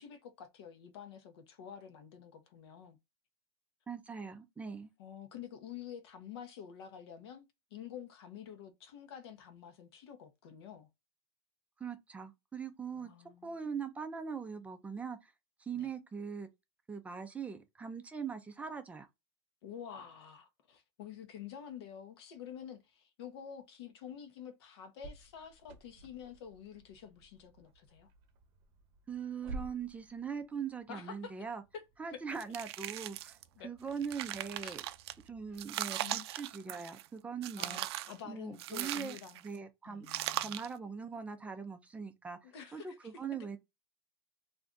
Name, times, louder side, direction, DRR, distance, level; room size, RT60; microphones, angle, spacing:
voice 1, 0.0-3.0 5.0-10.9 13.0-13.5 15.7-15.9 19.6-28.1 30.9-31.4 31.7-31.8 32.1-32.2 33.6-33.7 34.6-34.8 36.0-36.3 37.6-39.4 39.9-40.6 42.4-43.1, left 8 dB, 80° left, 0.8 m, -49 dB
voice 2, 3.9-4.9 11.8-13.1 13.4-15.3 15.6-16.5 16.9-19.1 29.1-31.6 32.0-33.4 33.6-34.8 35.3-37.8 38.3-39.2 39.4-43.6, right 6 dB, 10° right, 0.3 m, -41 dB
sound 1, 25.0-35.7, right 3 dB, 40° right, 0.7 m, -53 dB
sound 2, 32.4-33.4 33.9-35.1 35.6-37.1 37.4-38.2 38.6-39.5 40.1-40.8, right 14 dB, 85° right, 0.4 m, -39 dB
2.5 x 2.3 x 3.8 m
supercardioid pair, 155°, 13 cm